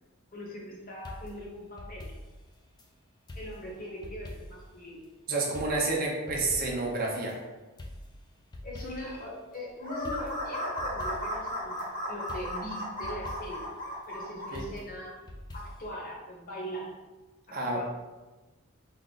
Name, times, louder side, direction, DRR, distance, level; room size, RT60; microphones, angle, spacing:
voice 1, 0.3-2.1 3.3-5.0 8.6-11.8 12.0-13.7 14.1-15.2 15.5-17.0 17.5-17.8, equal, 40° left, -3 dB, 0.8 m, -41 dB
sound 1, 1.0-2.9 3.3-4.8 5.0-5.1 5.5-7.4 7.8-9.3 9.5-9.6 10.0-11.9 12.3-13.7 14.5-15.9, left 1 dB, 20° left, 0.3 m, -45 dB
voice 2, 5.3-7.4 14.5-14.7 17.5-17.8, right 2 dB, 40° right, -2 dB, 0.6 m, -29 dB
sound 2, 9.8-14.6, equal, 85° left, 1.3 m, -35 dB
3.7 x 2.1 x 3.8 m, 1.2 s
head